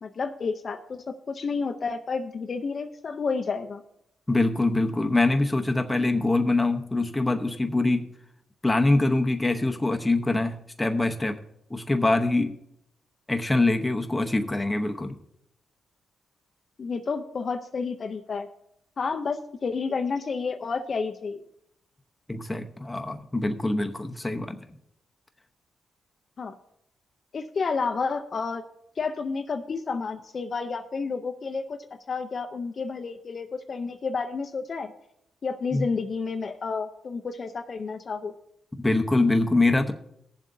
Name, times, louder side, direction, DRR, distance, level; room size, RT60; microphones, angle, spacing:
voice 1, 0.0-3.8 16.8-18.5 19.0-21.4 26.4-26.6 27.3-28.6 29.0-31.8 32.1-34.9 35.4-38.3, left 4 dB, 45° left, 7 dB, 0.6 m, -30 dB
voice 2, 4.3-8.1 8.6-11.4 11.7-12.5 13.3-15.2 22.3-24.6 35.7-35.9 38.8-39.9, left 2 dB, 15° left, 5 dB, 0.8 m, -24 dB
19.0 x 7.3 x 2.7 m, 0.76 s
cardioid pair, 100°, 0 cm